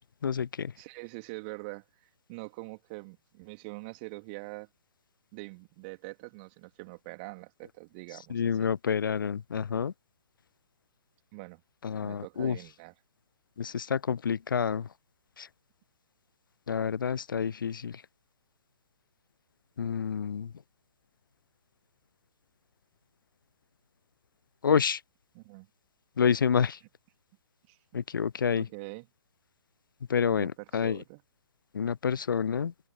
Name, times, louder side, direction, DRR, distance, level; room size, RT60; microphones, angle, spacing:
voice 1, 0.2-0.7 8.3-9.9 11.8-12.6 13.6-14.9 15.4-15.5 16.7-18.0 19.8-20.5 24.6-25.0 26.2-26.8 27.9-28.7 30.1-31.0 31.7-32.7, left 7 dB, 60° left, 0.5 m, -28 dB
voice 2, 0.8-4.7 5.3-8.7 11.3-11.6 12.0-12.9 25.3-25.7 27.7-27.8 28.5-29.1 30.3-31.2, right 29 dB, 25° right, 2.9 m, -44 dB
open air
figure-of-eight pair, 125°, 13 cm